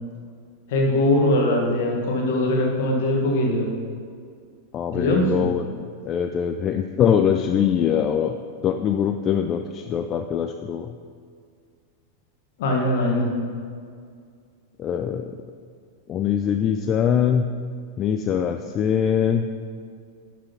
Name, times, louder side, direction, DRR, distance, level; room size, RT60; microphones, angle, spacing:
voice 1, 0.7-3.7 4.9-5.5 12.6-13.3, left 1 dB, 55° left, 0 dB, 1.5 m, -21 dB
voice 2, 4.7-5.6 6.1-8.3 8.6-10.9 14.8-15.3 16.1-17.4 18.0-19.4, left 8 dB, 30° left, 7 dB, 0.3 m, -22 dB
11.0 x 6.2 x 3.0 m, 2.2 s
figure-of-eight pair, 90°, 0 cm